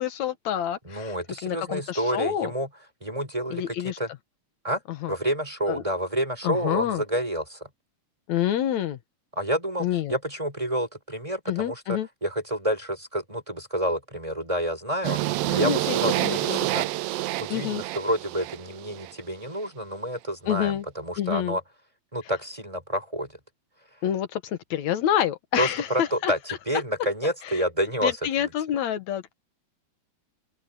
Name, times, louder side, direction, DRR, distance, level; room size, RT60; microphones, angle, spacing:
voice 1, 0.0-1.2 1.4-2.5 3.5-4.0 4.9-5.1 5.7-5.8 6.4-7.0 8.3-9.0 9.8-10.2 11.5-12.1 15.1-15.2 15.5-16.8 17.5-17.8 20.5-20.8 21.2-21.6 24.0-26.3 27.4-27.6 28.0-29.3, left 10 dB, 75° left, 2.5 m, -28 dB
voice 2, 0.8-2.7 3.0-4.1 4.6-4.8 5.1-7.7 9.4-15.2 15.5-16.8 17.4-21.6 22.1-23.3 25.6-28.2, equal, 10° right, 6.3 m, -29 dB
sound 1, 15.0-19.1, right 17 dB, 85° right, 1.3 m, -28 dB
omnidirectional pair, 3.3 m